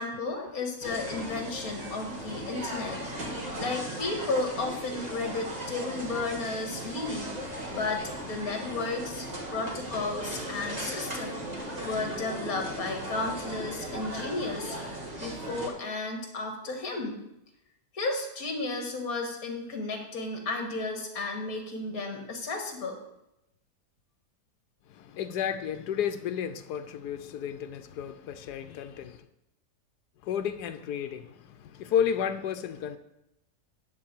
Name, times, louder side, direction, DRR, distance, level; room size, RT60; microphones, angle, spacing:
voice 1, 0.0-3.0 3.6-14.8 15.2-17.2 17.9-23.0, left 3 dB, 60° left, 2.0 m, -33 dB
sound 1, 0.8-15.7, right 1 dB, 25° right, 1.6 m, -37 dB
voice 2, 24.9-29.3 30.2-33.0, left 8 dB, 80° left, 1.3 m, -32 dB
10.0 x 4.0 x 7.5 m
omnidirectional pair, 1.7 m